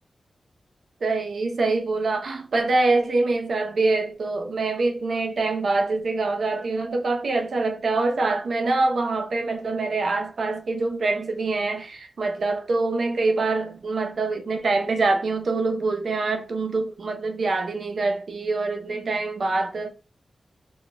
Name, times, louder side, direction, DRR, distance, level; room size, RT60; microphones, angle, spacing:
voice 1, 1.0-19.9, right 3 dB, 65° right, 0.4 m, -25 dB
2.1 x 2.0 x 3.2 m
wide cardioid pair, 155°, 0 cm